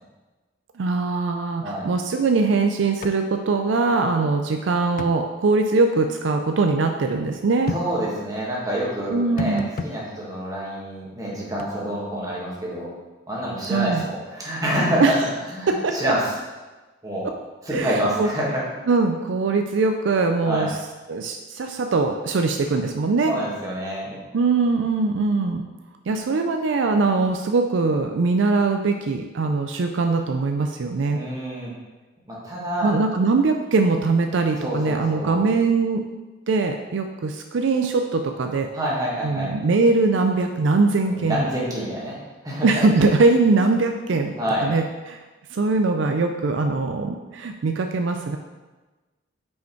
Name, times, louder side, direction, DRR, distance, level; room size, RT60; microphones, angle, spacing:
voice 1, 0.7-7.7 9.1-9.7 13.7-14.1 15.0-15.1 15.7-16.1 17.7-18.3 18.9-20.8 21.1-23.3 24.3-25.6 26.1-31.2 32.8-36.0 36.5-38.7 39.2-41.5 42.6-44.3 44.6-45.2 45.5-48.4, right 3 dB, 70° right, 5 dB, 0.4 m, -21 dB
sound 1, 3.0-3.2 3.5-3.6 5.0-5.2 7.7-7.9 9.4-10.0 11.6-11.7, left 4 dB, 45° left, 0.3 m, -30 dB
voice 2, 7.7-12.9 13.3-16.3 17.0-17.3 17.6-18.6 20.4-20.7 23.3-24.2 31.1-31.7 32.3-33.0 34.6-35.4 38.7-39.5 41.1-42.2 42.4-42.8 44.4-44.7, equal, 20° right, -5 dB, 1.7 m, -27 dB
5.7 x 5.2 x 4.5 m, 1.2 s
head